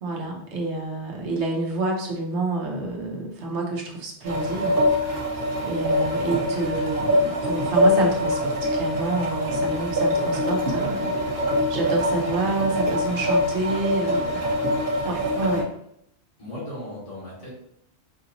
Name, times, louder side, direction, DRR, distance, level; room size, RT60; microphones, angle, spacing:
voice 1, 0.0-4.8 5.6-11.2 11.7-14.4 15.0-15.7, right 2 dB, 80° right, 0 dB, 1.1 m, -28 dB
sound 1, 4.2-15.6, equal, 55° right, 1.0 m, -24 dB
voice 2, 16.4-17.5, left 1 dB, 30° left, -6 dB, 1.6 m, -37 dB
4.8 x 2.9 x 2.6 m, 0.73 s
omnidirectional pair, 1.1 m